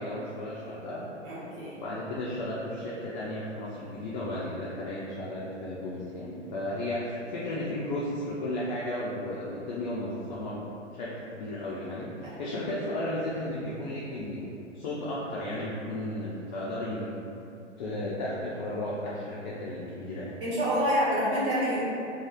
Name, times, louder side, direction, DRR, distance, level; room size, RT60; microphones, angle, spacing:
voice 1, 0.0-1.1 1.7-10.6 10.9-17.2 17.8-20.4, left 1 dB, 40° left, -7 dB, 0.4 m, -34 dB
voice 2, 1.2-1.7 20.4-21.8, equal, 45° right, -9 dB, 1.2 m, -27 dB
2.9 x 2.4 x 2.3 m, 2.6 s
figure-of-eight pair, 110°, 37 cm